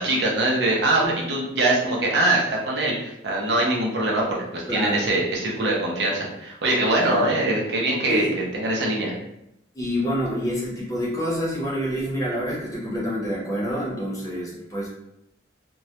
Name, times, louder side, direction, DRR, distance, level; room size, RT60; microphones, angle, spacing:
voice 1, 0.0-9.1, right 2 dB, 70° right, -3 dB, 0.6 m, -23 dB
voice 2, 4.7-5.0 7.1-7.3 8.1-8.3 9.7-14.9, equal, 20° left, -5 dB, 0.6 m, -27 dB
2.2 x 2.0 x 2.7 m, 0.84 s
head